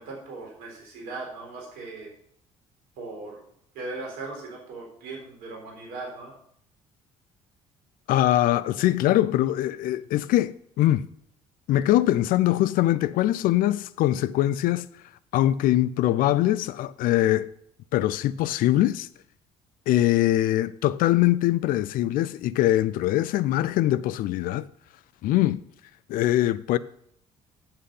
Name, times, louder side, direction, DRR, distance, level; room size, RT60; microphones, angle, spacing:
voice 1, 0.0-2.1 3.0-3.4 3.7-6.3, right 3 dB, 60° right, 4.0 m, -38 dB
voice 2, 8.1-11.1 11.7-14.9 15.3-17.5 17.9-19.1 19.9-24.7 25.2-25.6 26.1-26.8, left 14 dB, 55° left, 0.5 m, -22 dB
8.8 x 7.6 x 5.8 m
figure-of-eight pair, 50°, 17 cm